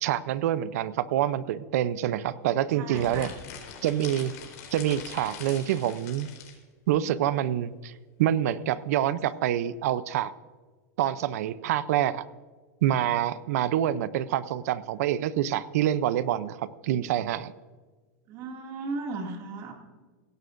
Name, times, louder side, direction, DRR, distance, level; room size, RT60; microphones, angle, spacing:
voice 1, 0.0-3.3 3.8-4.3 4.7-6.3 6.9-7.9 8.2-10.3 11.0-12.2 12.8-17.5, right 11 dB, 60° right, 16 dB, 0.6 m, -26 dB
voice 2, 2.7-3.3 12.0-12.1 18.3-19.7, right 3 dB, 35° right, 2 dB, 2.3 m, -36 dB
sound 1, 2.9-6.6, left 7 dB, 60° left, 3.8 m, -43 dB
17.0 x 16.0 x 2.6 m, 1.4 s
supercardioid pair, 175°, 9 cm